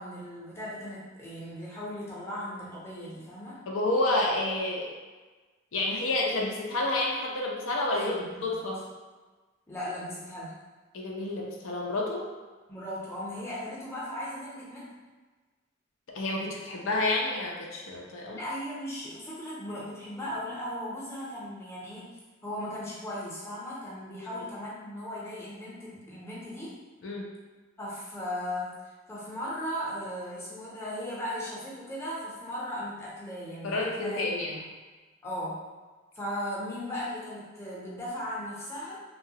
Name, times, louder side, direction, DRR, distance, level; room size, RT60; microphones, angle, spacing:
voice 1, 0.0-3.6 7.9-8.6 9.7-10.6 12.7-14.9 18.3-22.1 22.4-26.7 27.8-28.7 29.1-34.2 35.2-35.6 36.1-39.0, equal, 15° left, -7 dB, 0.6 m, -37 dB
voice 2, 3.7-4.9 5.7-8.8 10.9-12.3 16.1-18.4 24.3-24.4 27.0-27.3 33.6-34.6, left 2 dB, 80° left, -2 dB, 0.5 m, -29 dB
2.9 x 2.2 x 2.7 m, 1.3 s
head